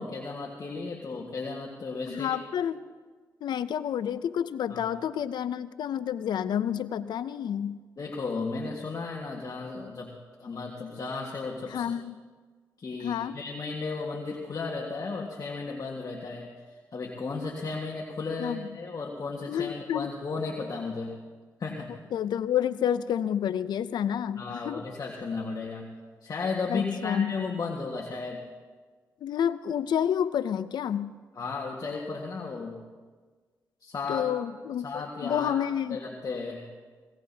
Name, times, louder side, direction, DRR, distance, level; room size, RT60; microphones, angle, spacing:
voice 1, 0.0-2.3 4.7-4.8 8.0-10.1 10.4-11.9 12.8-16.5 16.9-21.1 21.6-21.9 24.4-25.9 26.2-28.4 31.3-32.8 33.8-34.3 34.8-35.5 35.9-36.7, left 4 dB, 55° left, -1 dB, 1.6 m, -34 dB
voice 2, 2.1-2.8 3.4-7.8 11.7-12.2 13.0-13.4 18.4-18.7 19.5-20.1 22.1-24.8 26.7-27.3 29.2-31.1 34.1-36.0, left 9 dB, 75° left, 15 dB, 0.5 m, -29 dB
18.0 x 17.0 x 2.8 m, 1.4 s
supercardioid pair, 45°, 7 cm